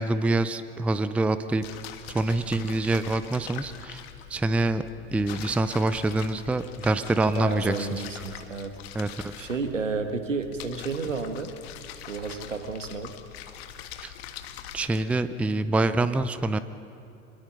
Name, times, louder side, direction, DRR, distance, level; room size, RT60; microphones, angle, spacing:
voice 1, 0.0-1.7 2.1-4.0 4.3-4.8 5.1-8.0 8.9-9.3 14.0-14.1 14.7-16.6, right 2 dB, 5° right, 13 dB, 0.5 m, -26 dB
sound 1, 1.6-15.2, left 10 dB, 55° left, 1.5 m, -43 dB
voice 2, 7.4-8.7 9.4-11.5 12.1-13.1, right 4 dB, 80° right, 7 dB, 1.7 m, -31 dB
25.5 x 22.0 x 5.7 m, 2.9 s
figure-of-eight pair, 80°, 37 cm